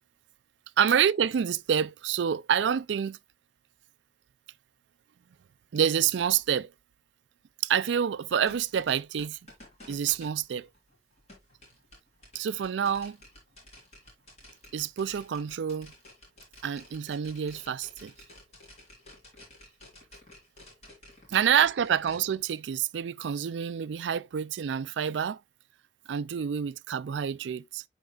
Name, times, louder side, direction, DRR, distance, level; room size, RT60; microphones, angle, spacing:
voice 1, 0.8-3.2 5.7-6.7 7.6-9.4 9.9-10.7 12.3-13.2 14.7-15.9 16.6-18.1 21.3-25.4 26.1-27.8, right 8 dB, 80° right, 0.4 m, -27 dB
sound 1, 8.3-22.3, left 2 dB, 35° left, 3.8 m, -52 dB
11.5 x 4.3 x 2.3 m
head